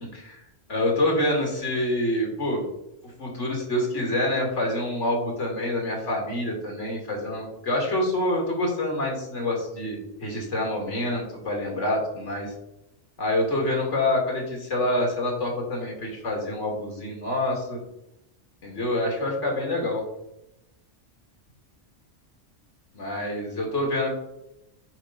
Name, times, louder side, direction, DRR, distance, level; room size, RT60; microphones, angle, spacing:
voice 1, 0.7-2.6 3.2-12.5 13.2-17.8 18.6-20.0 22.9-24.1, left 1 dB, 75° left, 0 dB, 2.4 m, -26 dB
8.8 x 5.3 x 4.0 m, 0.87 s
omnidirectional pair, 1.2 m